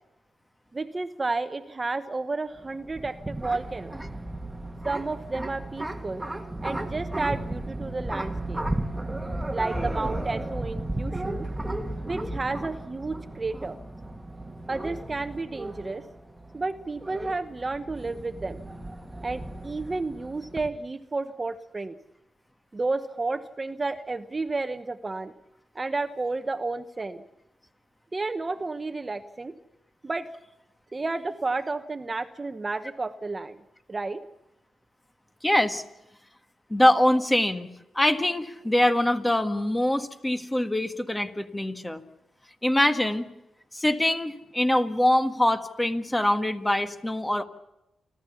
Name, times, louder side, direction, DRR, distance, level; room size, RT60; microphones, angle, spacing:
voice 1, 0.7-4.0 4.8-6.2 6.6-8.6 9.5-11.5 12.1-13.8 14.7-16.0 16.5-18.6 19.2-22.0 22.7-25.3 25.7-27.2 28.1-29.5 30.0-30.3 30.9-33.6 33.9-34.2, right 3 dB, 30° right, 10 dB, 1.0 m, -31 dB
sound 1, 2.6-20.7, right 1 dB, 10° right, 1.7 m, -34 dB
voice 2, 35.4-35.8 36.7-37.7 38.0-42.0 42.6-43.3 43.7-47.4, left 1 dB, 15° left, 8 dB, 1.6 m, -24 dB
28.5 x 13.0 x 7.1 m, 0.90 s
cardioid pair, 65°, 0 cm